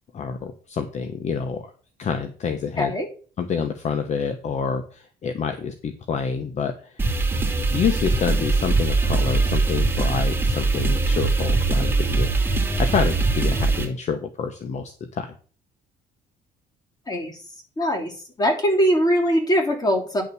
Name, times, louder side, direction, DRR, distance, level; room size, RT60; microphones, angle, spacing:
voice 1, 0.1-1.6 2.0-2.9 3.4-6.9 7.7-12.3 12.6-15.3, left 6 dB, 45° left, 7 dB, 1.1 m, -27 dB
voice 2, 2.8-3.1 17.1-17.4 17.8-18.1 18.4-20.2, equal, 25° left, 1 dB, 3.3 m, -21 dB
sound 1, 7.0-13.9, right 3 dB, 10° right, 2.7 m, -22 dB
10.5 x 4.1 x 7.1 m, 0.40 s
cardioid pair, 110°, 17 cm